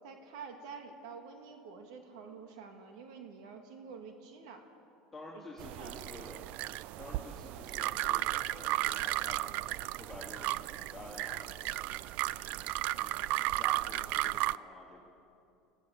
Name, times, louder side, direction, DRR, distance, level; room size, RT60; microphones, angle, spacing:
voice 1, 0.0-4.6 5.3-6.0, right 5 dB, 80° right, 4 dB, 2.0 m, -48 dB
voice 2, 5.1-6.4 7.0-9.6 9.9-10.6 10.9-11.5 13.0-15.0, left 2 dB, 5° left, -7 dB, 3.4 m, -50 dB
sound 1, 5.6-14.6, right 17 dB, 60° right, 0.4 m, -34 dB
22.5 x 16.0 x 7.2 m, 2.6 s
supercardioid pair, 105°, 3 cm